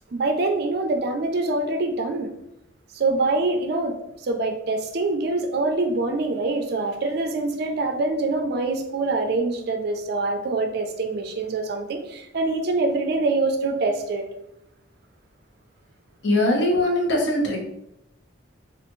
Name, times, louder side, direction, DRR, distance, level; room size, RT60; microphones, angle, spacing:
voice 1, 0.1-2.3 2.9-4.0 4.2-14.3, right 3 dB, 50° right, 5 dB, 0.4 m, -25 dB
voice 2, 16.2-17.6, left 1 dB, 60° left, -1 dB, 0.8 m, -21 dB
3.4 x 2.4 x 3.0 m, 0.81 s
head